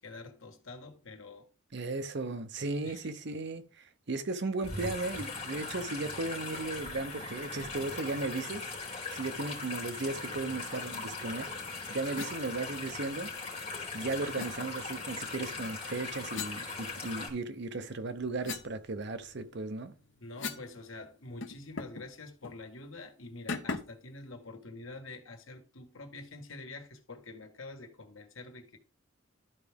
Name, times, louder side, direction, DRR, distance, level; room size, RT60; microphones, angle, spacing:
voice 1, 0.0-1.5 2.8-3.1 20.2-28.8, left 3 dB, 85° left, 1.6 m, -46 dB
voice 2, 1.7-11.5 11.9-13.3 13.9-19.9, right 3 dB, 60° right, 0.8 m, -36 dB
sound 1, 4.6-17.3, left 3 dB, 30° left, 3.6 m, -40 dB
sound 2, 12.1-12.4 14.4-14.5 16.3-17.4 17.8-20.7 21.0-21.1 21.4-22.1 22.4-22.6 23.5-24.0, left 4 dB, 65° left, 0.8 m, -41 dB
12.5 x 4.7 x 3.6 m
head